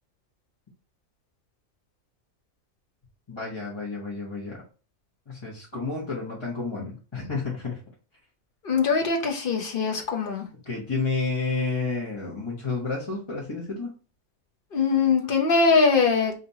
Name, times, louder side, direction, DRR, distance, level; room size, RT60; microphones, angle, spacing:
voice 1, 3.3-4.6 5.3-7.8 10.6-13.9, left 3 dB, 20° left, -7 dB, 1.1 m, -30 dB
voice 2, 8.6-10.5 14.7-16.3, left 4 dB, 45° left, 2 dB, 0.9 m, -22 dB
5.0 x 2.8 x 2.8 m, 0.35 s
omnidirectional pair, 1.5 m